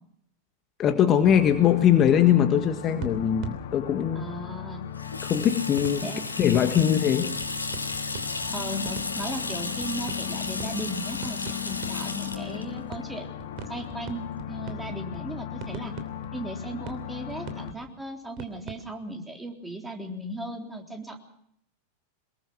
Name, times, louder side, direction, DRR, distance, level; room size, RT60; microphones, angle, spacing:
voice 1, 0.8-4.2 5.3-6.1 6.4-7.3, left 9 dB, 30° left, 7 dB, 1.6 m, -21 dB
sound 1, 1.2-17.7, left 11 dB, 55° left, 1.7 m, -37 dB
sound 2, 3.0-4.6 5.8-19.1, right 7 dB, 40° right, 3.0 m, -43 dB
voice 2, 4.2-4.9 6.0-6.2 8.5-13.3 13.7-16.0 16.3-21.2, right 1 dB, 10° right, 3 dB, 3.7 m, -37 dB
Water tap faucet / Sink (filling or washing), 4.9-14.3, left 3 dB, 80° left, 2.4 m, -34 dB
24.0 x 21.5 x 6.1 m, 0.70 s
figure-of-eight pair, 90°, 0 cm